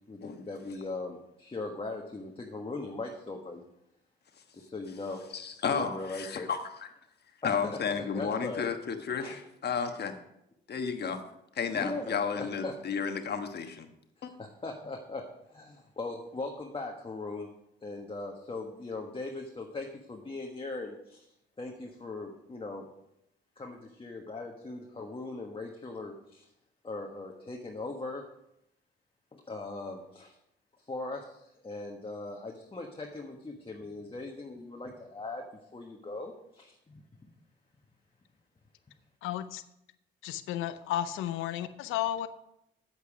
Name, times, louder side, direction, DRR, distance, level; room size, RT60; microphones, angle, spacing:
voice 1, 0.1-3.6 4.5-5.2 5.7-6.5 7.4-7.8 8.1-8.6 9.2-9.3 11.7-12.7 14.2-17.5 17.8-21.3 21.6-22.9 23.6-26.5 26.8-28.3 29.3-30.4 30.9-35.4 35.7-37.0, left 2 dB, 25° left, 1.4 m, -39 dB
voice 2, 5.3-6.9 7.4-10.1 10.7-11.2 11.5-13.9 14.2-14.3, left 6 dB, 55° left, 1.3 m, -32 dB
voice 3, 39.2-39.6 40.2-42.3, left 12 dB, 90° left, 0.6 m, -33 dB
8.4 x 8.1 x 4.9 m
supercardioid pair, 60°, 20 cm